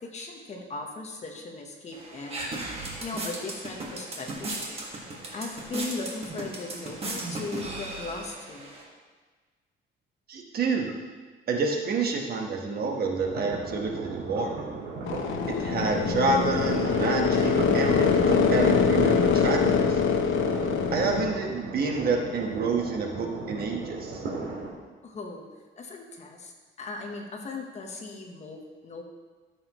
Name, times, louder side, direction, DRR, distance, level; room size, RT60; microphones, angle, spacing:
voice 1, 0.0-2.5 3.0-4.8 5.3-8.7 25.0-25.4 25.8-26.5 26.8-29.0, left 3 dB, 35° left, 2 dB, 1.0 m, -38 dB
sound 1, 1.9-8.8, right 2 dB, 30° right, 1.5 m, -36 dB
voice 2, 10.3-10.9 11.5-14.6 15.5-20.0 20.9-24.2, right 4 dB, 50° right, 1 dB, 1.2 m, -28 dB
sound 2, 13.2-24.7, right 3 dB, 85° right, 1.9 m, -36 dB
sound 3, 15.1-21.3, left 6 dB, 75° left, 0.8 m, -24 dB
13.5 x 7.0 x 3.0 m, 1.4 s
cardioid pair, 175°, 21 cm